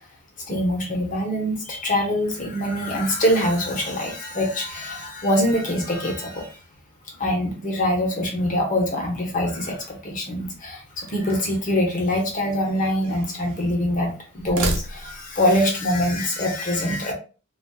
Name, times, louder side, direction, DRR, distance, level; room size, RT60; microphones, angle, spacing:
voice 1, 0.5-6.5 7.2-17.1, left 1 dB, 35° left, 1 dB, 0.9 m, -24 dB
sound 1, 11.0-11.7 12.6-13.7 14.3-15.4, right 2 dB, 80° right, 0.8 m, -32 dB
4.0 x 2.4 x 2.3 m, 0.35 s
head